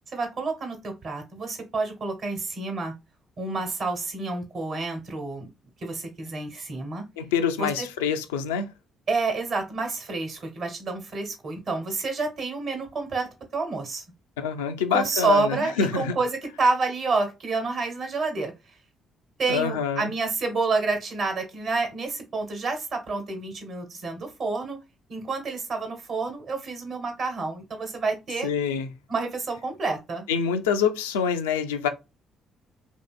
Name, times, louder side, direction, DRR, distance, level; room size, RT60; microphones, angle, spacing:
voice 1, 0.1-2.9 3.4-5.5 5.8-7.0 7.6-7.9 9.1-14.0 14.9-18.5 19.4-24.8 25.1-28.5 29.1-30.2, right 3 dB, 55° right, 1.1 m, -29 dB
voice 2, 7.2-8.7 14.4-16.1 19.5-20.1 28.4-28.9 30.3-31.9, left 7 dB, 85° left, 0.3 m, -26 dB
2.9 x 2.6 x 2.3 m
hypercardioid pair, 45°, 0 cm